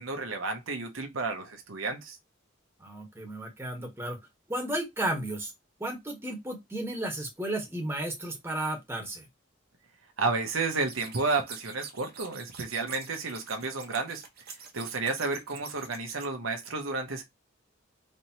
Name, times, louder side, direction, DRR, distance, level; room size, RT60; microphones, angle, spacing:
voice 1, 0.0-2.2 10.2-14.2 14.7-17.2, right 3 dB, 75° right, 1.0 m, -31 dB
voice 2, 2.8-4.2 4.5-5.5 5.8-9.2, right 1 dB, 10° right, 1.2 m, -33 dB
sound 1, 10.9-16.3, right 6 dB, 50° right, 1.0 m, -45 dB
4.3 x 3.2 x 2.8 m
head